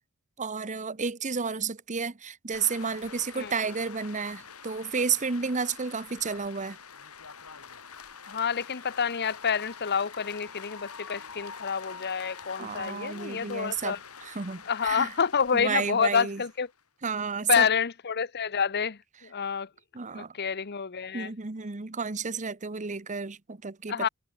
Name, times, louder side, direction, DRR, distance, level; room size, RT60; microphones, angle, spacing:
voice 1, 0.4-6.8 12.6-13.9 14.2-15.1 15.5-16.4 17.0-17.7 19.9-20.3 21.1-24.1, right 5 dB, 35° right, 1.0 m, -31 dB
sound 1, 2.5-16.8, left 6 dB, 90° left, 5.4 m, -46 dB
voice 2, 8.3-14.0 14.7-16.7 17.5-19.7 20.1-21.3 23.9-24.1, left 6 dB, 50° left, 0.9 m, -28 dB
head